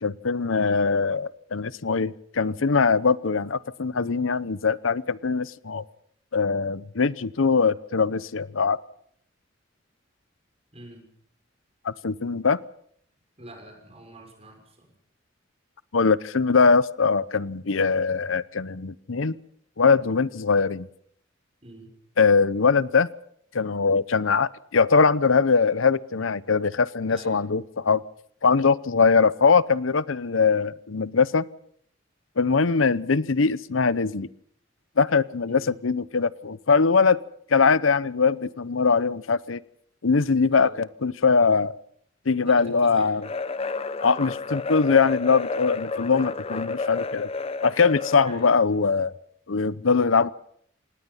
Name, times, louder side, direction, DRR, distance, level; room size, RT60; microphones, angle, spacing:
voice 1, 0.0-5.8 6.3-8.8 11.8-12.6 15.9-19.4 19.8-20.9 22.2-23.1 23.5-28.0 28.4-31.4 32.4-34.3 35.0-37.2 37.5-39.6 40.0-41.7 42.3-43.3 44.0-47.3 47.6-49.1 49.5-50.3, left 5 dB, 90° left, 17 dB, 0.8 m, -22 dB
voice 2, 10.7-11.1 13.4-15.0 21.6-21.9 27.1-27.5 35.4-35.8 40.5-40.7 42.4-43.1 48.2-48.5, right 1 dB, 30° right, 3 dB, 6.4 m, -45 dB
sound 1, 43.2-48.7, left 3 dB, 30° left, 0.8 m, -31 dB
26.5 x 19.5 x 5.7 m, 0.65 s
head